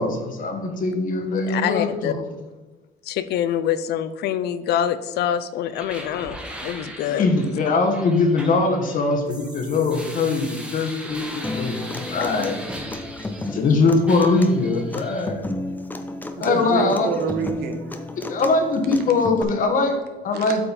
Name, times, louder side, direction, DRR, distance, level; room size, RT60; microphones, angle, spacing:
voice 1, 0.0-2.1 7.0-11.8 12.1-12.6 13.5-15.4 16.4-17.1 18.3-20.6, left 3 dB, 50° left, 4 dB, 1.6 m, -21 dB
voice 2, 1.4-2.1 3.0-6.4 6.6-7.3, left 10 dB, 75° left, 12 dB, 0.5 m, -25 dB
sound 1, 5.7-13.7 14.1-15.3, right 1 dB, 5° right, 1.4 m, -38 dB
Human voice / Acoustic guitar, 11.4-19.4, left 2 dB, 10° left, 0.7 m, -33 dB
voice 3, 16.3-18.2 20.3-20.5, right 5 dB, 75° right, 5 dB, 1.2 m, -28 dB
8.5 x 5.5 x 4.2 m, 1.2 s
cardioid pair, 110°, 17 cm